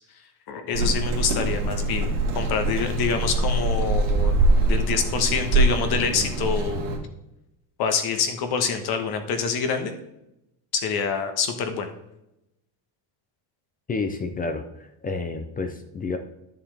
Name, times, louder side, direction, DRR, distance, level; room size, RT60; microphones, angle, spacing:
voice 1, 0.5-4.3 4.6-7.0 7.8-9.9 10.7-11.9, left 6 dB, 50° left, 7 dB, 1.3 m, -26 dB
sound 1, 0.7-7.0, right 2 dB, 55° right, 1.8 m, -23 dB
voice 2, 13.9-16.2, left 3 dB, 20° left, 7 dB, 0.4 m, -30 dB
11.0 x 7.0 x 3.4 m, 0.89 s
cardioid pair, 155°, 47 cm